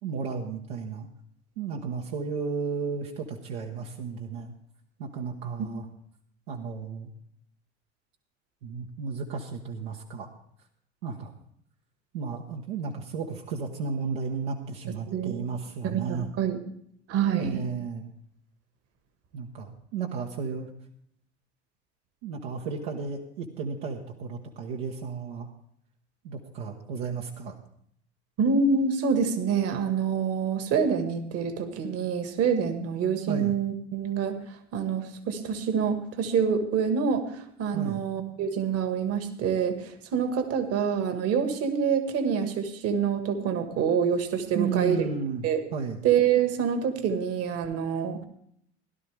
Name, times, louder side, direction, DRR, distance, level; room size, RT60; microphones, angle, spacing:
voice 1, 0.0-1.1 1.6-4.5 5.0-5.9 6.5-7.1 8.6-10.3 11.0-11.3 12.1-16.3 17.3-18.1 19.3-20.7 22.2-25.5 26.2-27.5 33.3-33.5 37.7-38.0 44.5-46.0, right 5 dB, 65° right, 0 dB, 1.4 m, -33 dB
voice 2, 15.8-16.6 17.1-17.6 28.4-34.4 34.7-45.1 45.4-45.6 46.0-48.2, right 6 dB, 45° right, 8 dB, 1.8 m, -26 dB
16.5 x 12.0 x 3.4 m, 0.68 s
hypercardioid pair, 80°, 33 cm